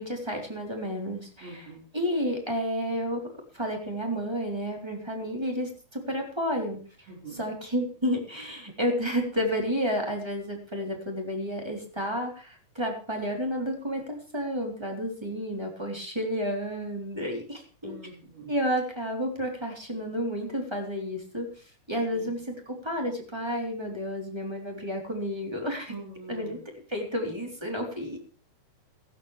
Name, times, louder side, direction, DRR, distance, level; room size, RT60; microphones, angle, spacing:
voice 1, 0.0-3.2 3.5-6.8 7.3-17.9 18.5-21.5 21.9-25.9 26.3-26.6 26.9-28.2, equal, 5° right, 2 dB, 3.0 m, -31 dB
voice 2, 1.4-1.8 7.1-7.4 17.8-18.5 22.1-22.2 25.9-26.5, right 3 dB, 60° right, -1 dB, 6.1 m, -43 dB
16.5 x 14.0 x 3.3 m, 0.40 s
omnidirectional pair, 4.9 m